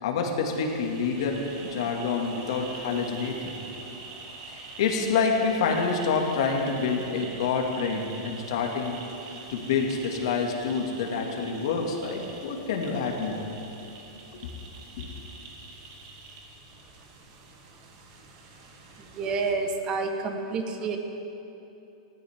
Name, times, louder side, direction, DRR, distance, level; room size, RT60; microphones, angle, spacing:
voice 1, 0.0-3.5 4.5-9.0 9.5-13.5 15.0-15.1, left 5 dB, 65° left, 2 dB, 2.2 m, -27 dB
sound 1, 0.5-19.5, right 3 dB, 50° right, 2.5 m, -45 dB
voice 2, 19.0-21.0, right 4 dB, 30° right, 5 dB, 1.3 m, -29 dB
19.5 x 16.0 x 3.7 m, 2.9 s
hypercardioid pair, 145°, 3 cm